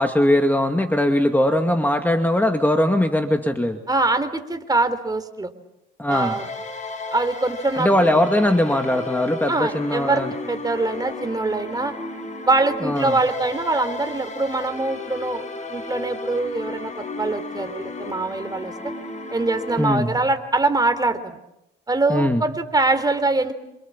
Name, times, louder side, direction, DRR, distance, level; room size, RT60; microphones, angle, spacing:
voice 1, 0.0-3.8 6.0-6.4 7.8-10.3 12.8-13.2 19.8-20.1 22.1-22.4, left 1 dB, 10° left, 4 dB, 2.2 m, -20 dB
voice 2, 3.9-5.5 6.1-6.5 7.1-8.1 9.5-11.9 12.4-18.9 19.3-21.2 21.9-23.5, right 2 dB, 20° right, 9 dB, 3.8 m, -23 dB
sound 1, 6.1-19.8, left 3 dB, 35° left, 7.3 m, -34 dB
28.0 x 27.0 x 7.4 m, 0.89 s
cardioid pair, 90°, 20 cm